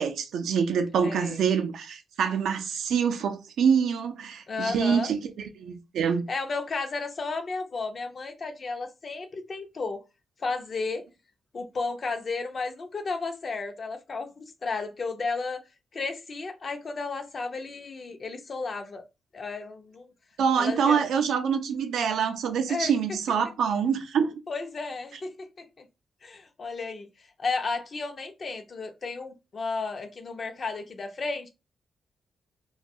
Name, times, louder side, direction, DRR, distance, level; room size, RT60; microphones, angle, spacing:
voice 1, 0.0-6.2 20.4-24.3, right 7 dB, 80° right, 0.4 m, -25 dB
voice 2, 1.0-1.4 4.5-5.1 6.3-10.0 10.4-11.1 11.5-15.6 15.9-19.0 19.3-20.1 20.6-21.1 22.7-22.9 24.5-25.9 26.2-27.1 27.4-31.5, left 4 dB, 55° left, 0.5 m, -33 dB
2.2 x 2.2 x 2.6 m
supercardioid pair, 45°, 0 cm